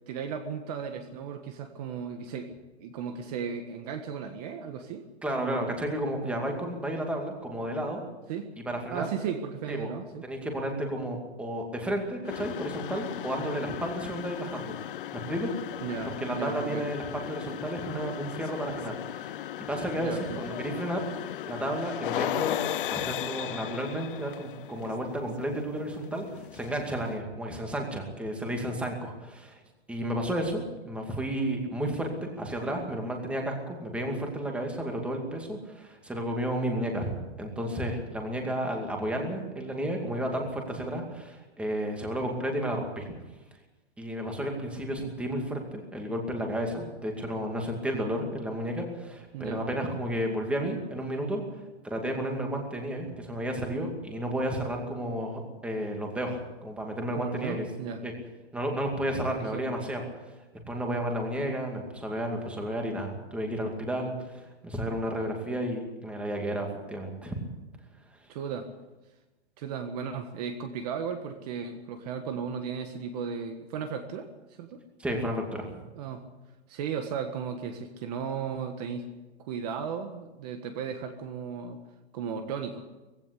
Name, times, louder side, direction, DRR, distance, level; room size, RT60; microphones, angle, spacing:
voice 1, 0.0-5.0 5.4-5.7 8.3-8.5 8.9-10.2 15.8-16.9 20.0-20.6 49.3-49.6 57.1-58.0 59.2-59.6 68.3-68.7 69.6-74.8 75.9-76.3 76.7-79.1 79.4-81.8 82.1-82.8, right 6 dB, 35° right, 7 dB, 1.5 m, -35 dB
voice 2, 5.2-8.0 8.6-9.1 9.7-9.9 10.2-14.7 15.3-15.5 16.2-19.4 19.7-22.6 22.9-29.6 29.9-43.1 44.0-51.4 51.8-57.6 58.0-58.1 58.5-60.4 60.7-67.4 75.0-75.8, right 1 dB, 5° right, 2 dB, 2.4 m, -32 dB
sound 1, 12.2-27.2, left 12 dB, 50° left, 0.8 m, -36 dB
20.0 x 16.5 x 8.3 m, 1.1 s
hypercardioid pair, 165°, 34 cm